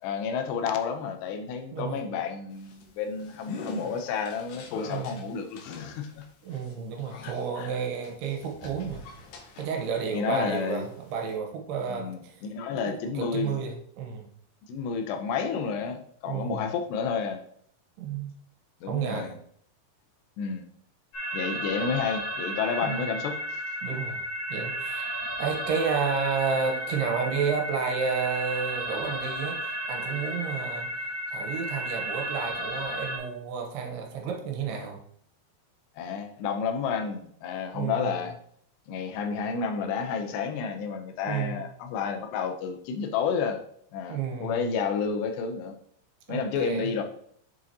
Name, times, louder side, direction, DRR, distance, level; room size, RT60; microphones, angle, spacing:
voice 1, 0.0-6.3 7.2-7.7 10.1-10.8 11.9-13.6 14.7-17.4 18.8-19.4 20.4-20.7 21.3-23.6 23.9-24.0 36.0-38.3 38.9-43.6 43.9-45.7 46.3-47.0, left 6 dB, 90° left, 6 dB, 3.0 m, -31 dB
voice 2, 1.7-2.0 4.9-5.2 6.4-9.1 9.6-12.4 12.9-14.3 16.2-16.7 18.0-18.3 18.9-19.3 22.8-23.0 23.8-24.2 24.5-30.9 31.3-35.0 37.7-38.2 41.2-41.6 44.1-44.7 46.3-46.9, right 6 dB, 80° right, 3 dB, 3.0 m, -31 dB
sound 1, 2.5-10.1 10.4-11.3, left 4 dB, 70° left, 2.0 m, -44 dB
sound 2, 21.1-33.2, equal, 40° left, 3.3 m, -33 dB
7.2 x 6.4 x 2.8 m, 0.65 s
omnidirectional pair, 4.7 m